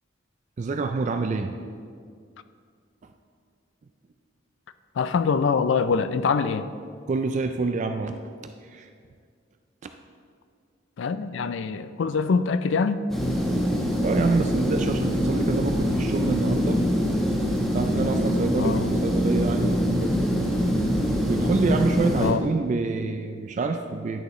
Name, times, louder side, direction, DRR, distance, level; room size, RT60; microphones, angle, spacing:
voice 1, 0.6-1.5 7.1-8.1 8.6-8.9 14.0-16.8 17.7-20.1 21.3-24.2, right 4 dB, 40° right, 7 dB, 0.3 m, -27 dB
voice 2, 5.0-6.7 11.0-13.0 18.6-18.9 22.2-22.4, left 5 dB, 70° left, 12 dB, 0.4 m, -24 dB
sound 1, 13.1-22.3, equal, ahead, 1.0 m, -24 dB
10.5 x 6.5 x 3.1 m, 2.1 s
head